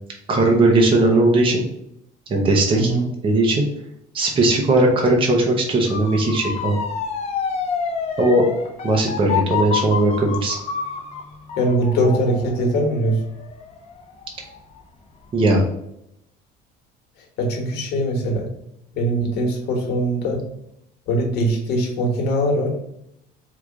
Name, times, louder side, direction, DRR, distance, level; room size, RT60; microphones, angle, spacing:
voice 1, 0.3-1.6 2.3-2.9 3.2-3.6 4.1-6.8 8.2-8.5 8.8-10.6 15.3-15.6, right 2 dB, 30° right, 1 dB, 0.8 m, -18 dB
voice 2, 2.7-3.1 11.6-13.2 17.4-18.5 18.9-20.4 21.1-22.7, right 1 dB, 65° left, 1 dB, 1.2 m, -21 dB
Motor vehicle (road) / Siren, 5.9-14.8 15.2-15.6, left 6 dB, 35° left, 0.6 m, -28 dB
4.8 x 2.4 x 3.5 m, 0.78 s
cardioid pair, 135°, 18 cm